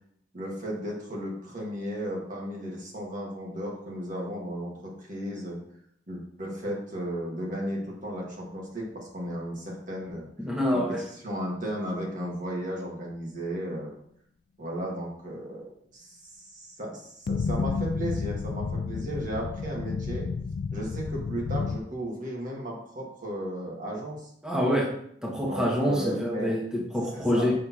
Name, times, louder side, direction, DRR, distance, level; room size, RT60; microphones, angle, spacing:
voice 1, 0.3-5.6 6.1-10.2 10.7-10.8 11.2-13.9 14.6-20.3 20.7-24.3 25.4-26.6 27.1-27.5, equal, 50° right, -2 dB, 1.7 m, -35 dB
voice 2, 10.4-11.0 24.4-24.9 25.2-27.5, equal, 5° right, -5 dB, 1.4 m, -26 dB
sound 1, 17.3-21.8, left 4 dB, 50° left, 0.3 m, -31 dB
6.4 x 3.4 x 5.7 m, 0.68 s
head